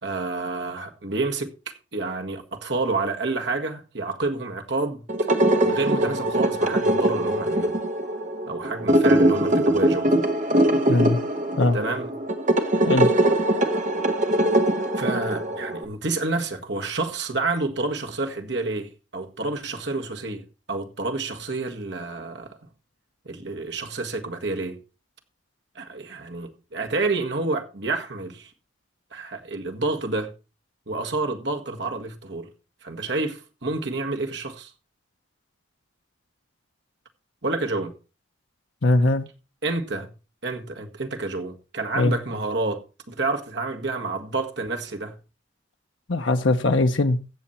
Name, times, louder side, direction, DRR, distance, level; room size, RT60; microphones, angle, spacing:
voice 1, 0.0-5.1 5.6-7.8 8.5-10.1 11.7-12.1 15.0-22.6 23.2-24.8 25.7-28.5 29.1-30.3 30.9-32.5 32.8-34.7 37.4-37.9 39.6-40.1 40.4-45.2, right 3 dB, 60° right, 1.7 m, -29 dB
sound 1, 5.1-15.8, right 1 dB, 40° right, 1.4 m, -22 dB
voice 2, 10.9-11.2 11.6-11.8 12.9-13.1 38.8-39.3 42.0-42.1 46.1-47.2, left 2 dB, 75° left, 0.9 m, -20 dB
15.5 x 7.1 x 4.4 m
head